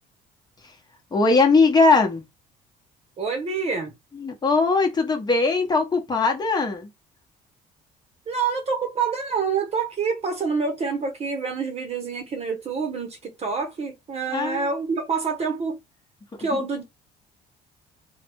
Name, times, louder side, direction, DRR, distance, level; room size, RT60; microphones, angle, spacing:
voice 1, 1.1-2.2 4.1-6.9 14.3-14.6, left 3 dB, 25° left, 1.0 m, -20 dB
voice 2, 3.2-3.9 8.3-15.8 16.4-16.8, right 5 dB, 40° right, 0.9 m, -27 dB
3.3 x 2.2 x 2.9 m
cardioid pair, 110°, 17 cm